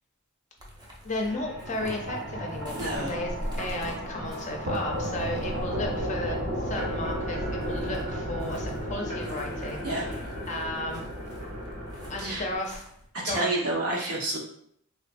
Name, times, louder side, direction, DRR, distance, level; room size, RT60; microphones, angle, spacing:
sound 1, 0.6-13.1, equal, 20° right, 0.5 m, -44 dB
voice 1, 1.0-10.1 10.5-11.0 12.1-12.8 13.2-13.5, left 1 dB, 35° left, 1 dB, 0.5 m, -34 dB
sound 2, 1.2-12.6, equal, 55° right, 0.9 m, -34 dB
voice 2, 2.7-3.2 9.8-10.0 12.2-12.4 13.1-14.4, right 2 dB, 85° right, -4 dB, 1.1 m, -29 dB
3.7 x 2.2 x 2.5 m, 0.68 s
head